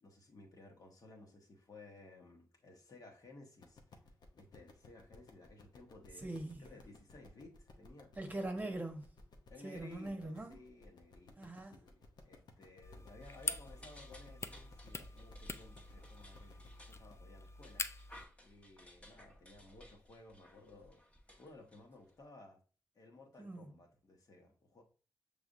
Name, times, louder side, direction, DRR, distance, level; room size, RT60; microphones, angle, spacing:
voice 1, 0.0-4.0 4.3-8.1 9.5-17.8 18.4-21.0 21.4-22.6 22.9-24.8, left 2 dB, 55° left, 1.3 m, -57 dB
sound 1, 3.6-17.2, left 3 dB, 80° left, 0.8 m, -60 dB
voice 2, 6.2-6.7 8.2-9.1 9.6-10.6 11.4-11.9 23.4-23.7, right 2 dB, 25° right, 1.0 m, -42 dB
sound 2, 12.8-18.2, left 3 dB, 40° left, 0.4 m, -45 dB
sound 3, 13.2-22.2, left 1 dB, 15° left, 1.1 m, -59 dB
5.9 x 3.4 x 2.5 m
cardioid pair, 55°, 7 cm